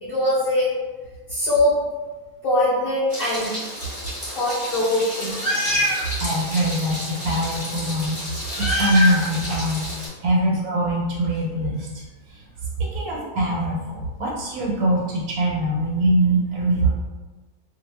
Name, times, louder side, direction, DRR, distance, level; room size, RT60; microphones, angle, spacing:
voice 1, 0.0-0.7 1.3-1.8 2.4-3.5 4.3-5.4, left 1 dB, 55° left, -8 dB, 0.6 m, -22 dB
Meow, 3.1-10.1, left 1 dB, 10° right, 0.5 m, -28 dB
voice 2, 6.2-7.0 7.2-9.9 10.2-12.0 12.8-16.9, right 1 dB, 90° right, -4 dB, 1.1 m, -22 dB
2.4 x 2.1 x 3.1 m, 1.2 s
omnidirectional pair, 1.5 m